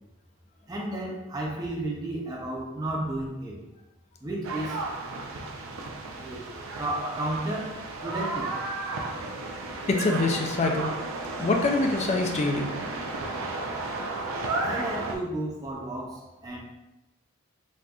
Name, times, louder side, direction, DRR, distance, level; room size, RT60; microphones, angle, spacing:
voice 1, 0.7-3.6 4.2-4.8 6.1-6.5 6.8-8.6 14.6-16.6, right 1 dB, 20° right, -3 dB, 0.5 m, -33 dB
sound 1, 4.4-15.2, right 2 dB, 80° right, 0.4 m, -33 dB
voice 2, 9.9-10.9 11.4-12.7, left 3 dB, 30° left, 3 dB, 0.3 m, -25 dB
4.2 x 2.5 x 2.3 m, 1.0 s
head